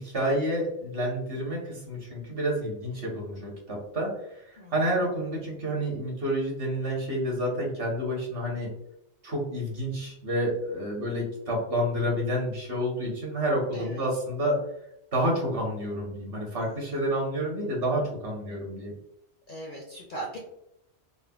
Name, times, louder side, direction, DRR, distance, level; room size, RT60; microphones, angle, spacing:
voice 1, 0.0-8.7 9.2-14.6 15.1-18.9, equal, 55° right, -2 dB, 1.1 m, -29 dB
voice 2, 19.5-20.4, right 1 dB, 60° left, -1 dB, 0.5 m, -38 dB
3.6 x 2.0 x 2.2 m, 0.81 s
omnidirectional pair, 1.3 m